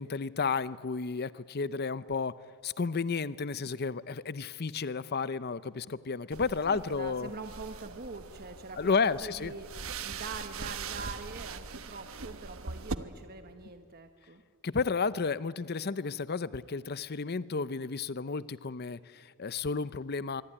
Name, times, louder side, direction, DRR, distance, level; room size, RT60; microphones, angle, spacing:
voice 1, 0.0-2.3 2.6-7.3 8.8-9.5 14.6-20.4, left 4 dB, 50° left, 16 dB, 0.6 m, -32 dB
sound 1, 6.3-12.9, right 5 dB, 75° right, 1.1 m, -41 dB
voice 2, 6.6-9.7 10.0-14.4, right 3 dB, 45° right, 7 dB, 1.2 m, -44 dB
24.5 x 24.0 x 10.0 m, 2.1 s
head